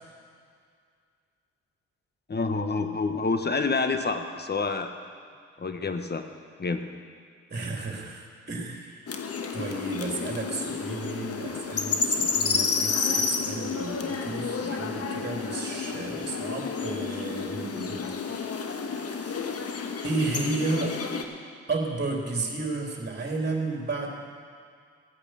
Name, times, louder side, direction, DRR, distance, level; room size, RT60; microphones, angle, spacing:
voice 1, 2.3-4.9 5.6-6.3 6.6-6.9, left 4 dB, 30° left, 7 dB, 1.3 m, -28 dB
voice 2, 7.5-9.1 9.5-18.0 18.3-19.6 20.0-20.9 21.7-24.1, right 3 dB, 30° right, 0 dB, 3.4 m, -33 dB
sound 1, 9.1-21.2, left 5 dB, 45° left, 1.3 m, -30 dB
15.0 x 8.7 x 6.5 m, 2.2 s
hypercardioid pair, 50°, 32 cm